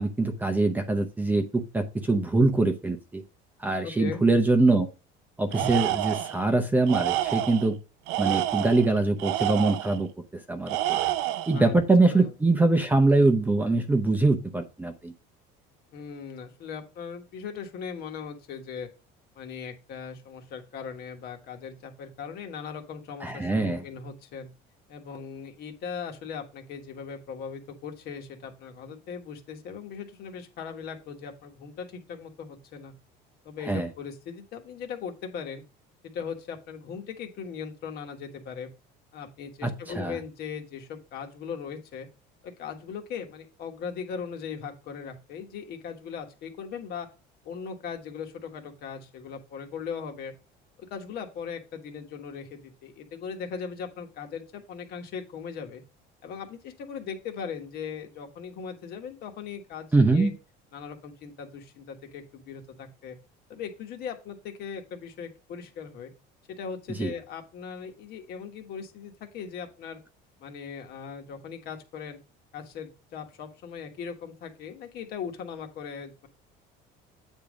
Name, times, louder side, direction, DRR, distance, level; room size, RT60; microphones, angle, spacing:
voice 1, 0.0-3.2 3.6-4.9 5.4-7.8 8.2-10.1 10.5-11.0 11.5-15.1 23.2-23.8 33.6-33.9 39.6-39.7 40.0-40.2 59.9-60.3 67.0-67.1, right 2 dB, 10° right, 6 dB, 0.7 m, -23 dB
voice 2, 3.8-4.2 11.5-11.7 12.1-12.3 15.9-18.9 19.3-24.5 24.9-32.9 33.4-35.6 36.0-38.7 39.1-42.1 42.4-47.1 47.4-50.3 50.8-55.8 56.2-60.3 60.7-63.2 63.5-66.1 66.5-70.0 70.4-72.2 72.5-76.3, left 6 dB, 55° left, 5 dB, 1.5 m, -39 dB
Tools, 5.5-6.4 6.9-7.7 8.1-10.0 10.7-11.6, right 14 dB, 90° right, 0.5 m, -28 dB
8.7 x 3.7 x 5.0 m, 0.31 s
cardioid pair, 150°, 20 cm